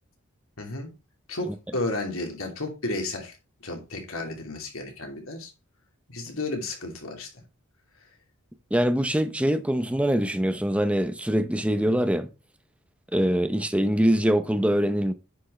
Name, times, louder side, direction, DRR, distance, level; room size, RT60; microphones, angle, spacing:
voice 1, 0.6-0.9 1.3-3.4 3.6-5.5 6.1-7.3, left 2 dB, 70° left, 2.8 m, -32 dB
voice 2, 8.7-12.3 13.1-15.1, equal, 5° right, 0.7 m, -23 dB
9.9 x 6.2 x 3.2 m
head